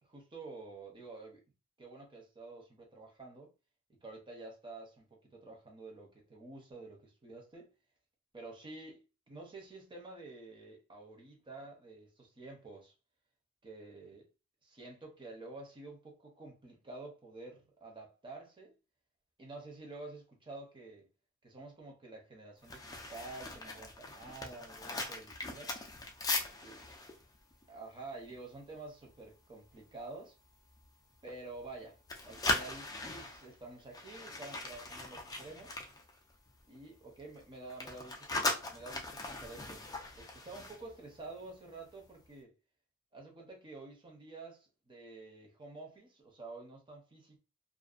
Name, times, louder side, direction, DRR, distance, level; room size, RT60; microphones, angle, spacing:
voice 1, 0.0-1.4 1.8-3.5 3.9-7.7 8.3-12.9 13.6-14.3 14.6-18.7 19.4-21.1 21.4-25.7 26.6-26.8 27.7-30.3 31.2-32.0 32.2-35.8 36.7-38.3 38.7-39.8 40.2-42.5 43.1-47.4, right 3 dB, 25° right, 0.7 m, -49 dB
sound 1, 22.6-28.7 29.1-29.3 29.7-30.0 30.5-31.7 32.0-36.8 37.0-41.5 41.8-42.1, left 2 dB, 15° left, 0.4 m, -39 dB
2.5 x 2.2 x 2.4 m
head